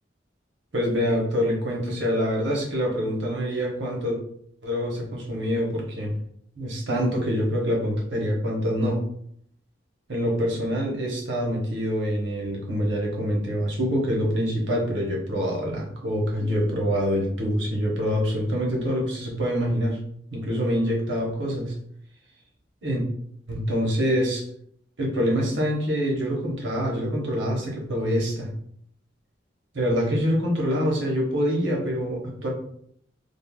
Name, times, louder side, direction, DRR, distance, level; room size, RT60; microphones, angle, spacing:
voice 1, 0.7-4.2 4.6-6.1 6.6-9.0 10.1-20.0 20.3-21.7 22.8-23.0 23.5-24.4 25.0-28.5 29.7-32.5, equal, 85° right, -1 dB, 0.8 m, -25 dB
3.4 x 2.0 x 2.2 m, 0.68 s
head